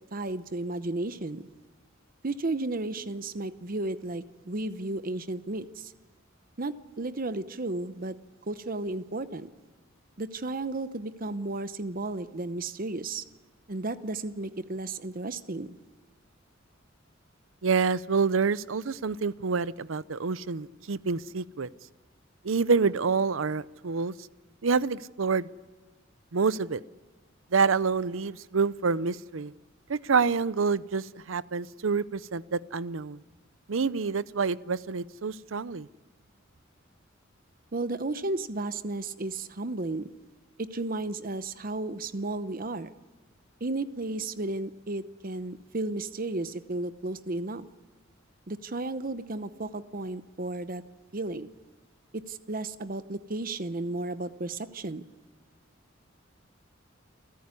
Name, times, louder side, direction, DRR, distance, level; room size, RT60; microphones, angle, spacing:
voice 1, 0.1-1.4 2.2-5.9 6.6-8.2 8.5-9.5 10.2-13.2 13.7-15.7 37.7-40.1 40.6-42.9 43.6-47.7 48.5-50.8 51.1-51.5 52.1-55.1, right 2 dB, 45° right, 13 dB, 0.8 m, -33 dB
voice 2, 17.6-21.7 22.4-24.1 24.6-25.5 26.3-26.8 27.5-29.5 29.9-33.2 33.7-35.9, right 5 dB, 85° right, 18 dB, 0.7 m, -27 dB
28.5 x 14.0 x 9.8 m, 1.3 s
head